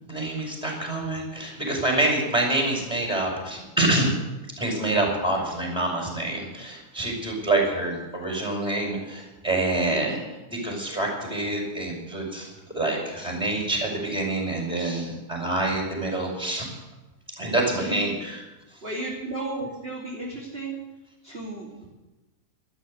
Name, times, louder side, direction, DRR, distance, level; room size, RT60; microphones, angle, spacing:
voice 1, 0.1-4.1 4.6-10.2 10.5-16.6 17.4-18.4, right 2 dB, ahead, -1 dB, 5.4 m, -26 dB
voice 2, 17.8-18.1 18.8-20.8 21.2-21.9, right 2 dB, 20° right, -5 dB, 3.1 m, -33 dB
13.5 x 13.0 x 8.0 m, 1.1 s
omnidirectional pair, 3.5 m